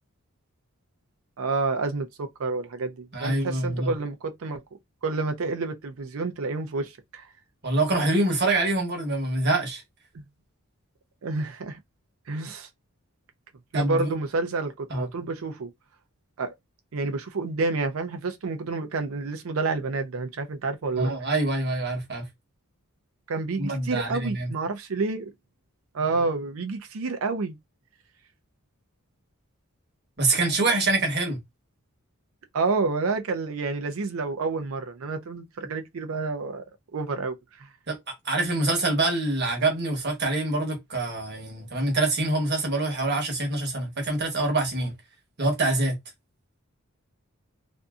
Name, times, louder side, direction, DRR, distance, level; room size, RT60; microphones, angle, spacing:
voice 1, 1.4-4.6 5.0-7.3 10.1-10.2 11.2-11.8 12.3-12.7 13.7-15.7 16.4-16.5 16.9-21.1 23.3-25.3 25.9-27.6 32.5-36.6 36.9-37.7, right 3 dB, 70° right, 0.5 m, -29 dB
voice 2, 3.1-3.9 7.6-9.8 13.7-14.1 14.9-15.1 21.0-22.2 23.6-24.5 30.2-31.4 37.9-38.0 38.2-44.9 45.4-46.0, right 2 dB, 50° right, 1.1 m, -25 dB
2.6 x 2.6 x 2.3 m
head